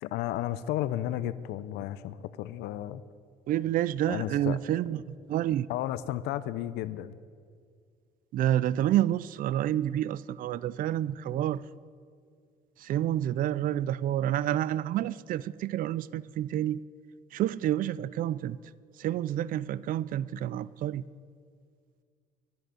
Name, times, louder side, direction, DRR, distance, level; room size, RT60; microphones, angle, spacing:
voice 1, 0.0-3.0 4.1-4.6 5.7-7.1, left 13 dB, 85° left, 14 dB, 0.5 m, -33 dB
voice 2, 3.5-5.0 5.3-5.7 8.3-11.6 12.8-16.8 17.3-18.6 19.0-21.0, right 12 dB, 55° right, 20 dB, 0.4 m, -29 dB
11.0 x 9.0 x 9.5 m, 2.1 s
cardioid pair, 110°, 17 cm